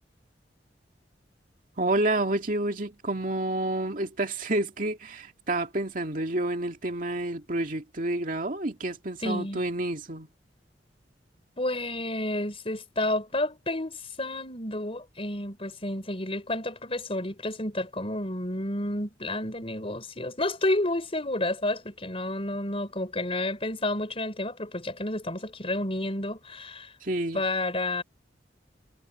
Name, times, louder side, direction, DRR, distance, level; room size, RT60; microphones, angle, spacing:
voice 1, 1.8-10.3 27.0-27.4, right 2 dB, 50° right, 2.3 m, -29 dB
voice 2, 9.2-9.6 11.6-26.9 27.3-28.0, left 1 dB, 35° left, 4.5 m, -30 dB
head